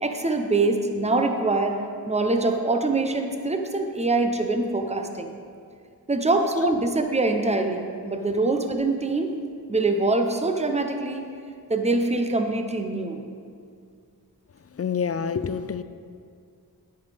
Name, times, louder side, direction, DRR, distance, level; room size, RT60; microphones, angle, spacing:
voice 1, 0.0-5.3 6.1-9.3 9.7-11.3 11.7-13.2, right 2 dB, 15° right, 5 dB, 0.8 m, -24 dB
voice 2, 14.7-15.8, left 6 dB, 40° left, 12 dB, 0.4 m, -27 dB
9.5 x 9.5 x 3.5 m, 2.3 s
wide cardioid pair, 65°, 39 cm